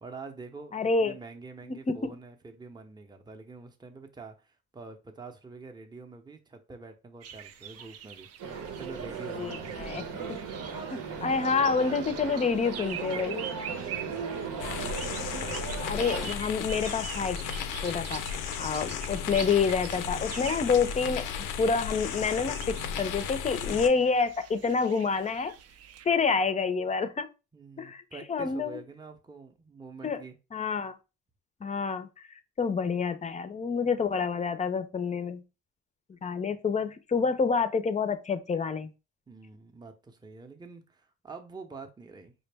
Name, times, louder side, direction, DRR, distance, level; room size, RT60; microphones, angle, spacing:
voice 1, 0.0-8.3 8.8-9.8 13.8-14.2 27.5-30.4 39.3-42.3, right 4 dB, 15° right, 0.6 m, -46 dB
voice 2, 0.7-1.2 1.6-2.1 9.4-10.0 10.9-13.4 15.3-15.5 15.8-17.4 17.8-18.2 18.6-21.3 21.6-25.5 26.0-27.3 27.8-28.0 28.3-28.8 30.0-30.2 30.5-30.9 31.6-32.1 32.6-35.4 36.2-38.9, left 5 dB, 25° left, 0.5 m, -28 dB
sound 1, 7.2-26.1, right 8 dB, 55° right, 0.5 m, -45 dB
sound 2, 8.4-16.3, right 6 dB, 80° right, 0.9 m, -37 dB
sound 3, 14.6-23.9, left 8 dB, 90° left, 0.5 m, -35 dB
5.0 x 2.0 x 3.3 m
cardioid pair, 90°, 30 cm